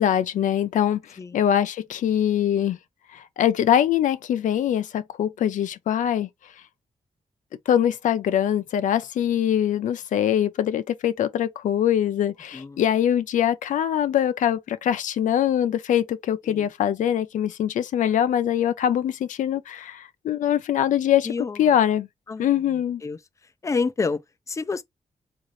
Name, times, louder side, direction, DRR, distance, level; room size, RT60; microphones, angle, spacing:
voice 1, 0.0-2.8 3.1-6.3 7.7-21.3 21.6-22.1 22.4-23.0, left 10 dB, 80° left, 0.5 m, -23 dB
voice 2, 21.2-21.7 22.3-23.2 23.6-24.2 24.5-24.8, left 4 dB, 25° left, 0.4 m, -29 dB
3.7 x 2.5 x 3.1 m
cardioid pair, 95°, 13 cm